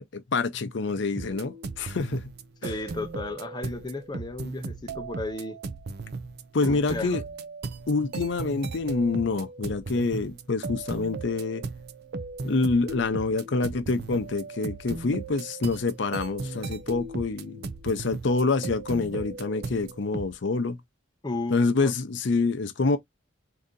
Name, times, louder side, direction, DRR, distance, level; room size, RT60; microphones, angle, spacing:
voice 1, 0.1-2.3 2.6-2.7 6.5-7.2 7.9-11.6 12.4-20.8 21.5-23.0, left 3 dB, 60° left, 0.6 m, -27 dB
sound 1, 1.1-20.3, right 3 dB, 50° right, 0.5 m, -37 dB
voice 2, 2.6-5.6 6.6-7.2 21.2-21.9, left 2 dB, 20° left, 0.6 m, -34 dB
3.9 x 2.7 x 3.7 m
head